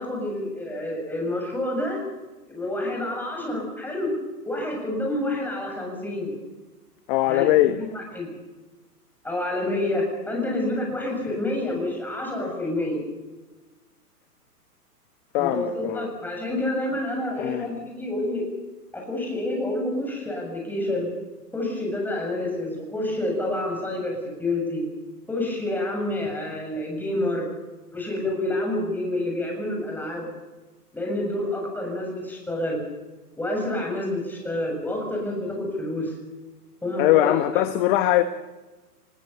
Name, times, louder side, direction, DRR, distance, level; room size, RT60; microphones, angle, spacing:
voice 1, 0.0-2.0 2.5-4.1 4.4-6.3 7.3-8.3 9.2-13.0 15.4-18.4 18.9-21.1 21.5-24.8 25.3-27.5 27.9-30.3 30.9-32.8 33.4-36.1 36.8-37.6, left 1 dB, 5° left, 7.1 m, -28 dB
voice 2, 7.1-7.8 15.3-16.1 17.4-17.7 37.0-38.2, left 14 dB, 35° left, 1.1 m, -21 dB
24.5 x 21.5 x 7.0 m
hypercardioid pair, 140°, 48 cm